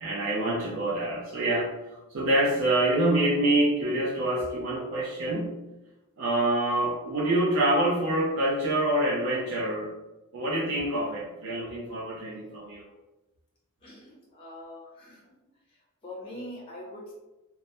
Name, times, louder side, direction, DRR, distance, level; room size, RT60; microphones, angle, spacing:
voice 1, 0.0-5.5 6.2-9.9 10.3-12.8, right 1 dB, 60° right, -5 dB, 0.5 m, -26 dB
voice 2, 13.8-15.2 16.0-17.1, left 1 dB, 25° left, -4 dB, 0.5 m, -43 dB
2.2 x 2.0 x 2.8 m, 1.0 s
head